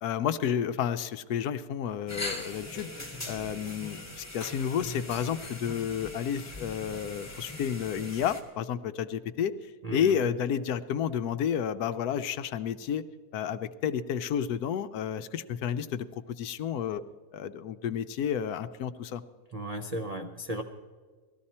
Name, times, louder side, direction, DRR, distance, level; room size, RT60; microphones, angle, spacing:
voice 1, 0.0-2.9 3.3-9.5 9.9-13.0 13.3-17.0 17.3-19.2, left 8 dB, 75° left, 11 dB, 1.1 m, -31 dB
sound 1, 2.1-8.4, left 2 dB, 10° left, 1.5 m, -40 dB
voice 2, 9.8-10.1 19.5-20.6, right 1 dB, 65° right, 4 dB, 0.3 m, -35 dB
18.0 x 13.5 x 4.3 m, 1.5 s
omnidirectional pair, 1.7 m